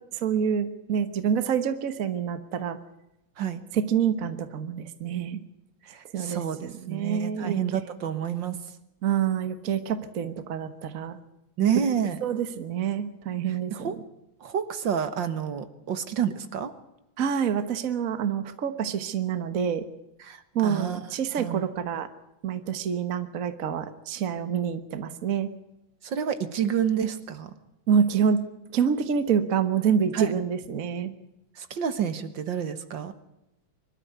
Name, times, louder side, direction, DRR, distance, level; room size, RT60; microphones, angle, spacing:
voice 1, 0.1-2.8 3.7-5.4 6.1-7.6 9.0-11.2 12.2-13.9 17.2-19.8 20.5-22.1 22.4-25.5 27.9-28.4 28.7-31.1, right 7 dB, 45° right, 10 dB, 1.5 m, -27 dB
voice 2, 5.8-8.6 11.6-12.2 13.7-14.0 14.4-16.7 20.2-21.0 21.4-21.6 26.0-27.5 30.1-30.3 31.6-33.1, right 8 dB, 65° right, 11 dB, 2.0 m, -29 dB
24.0 x 12.5 x 9.4 m, 0.88 s
omnidirectional pair, 2.2 m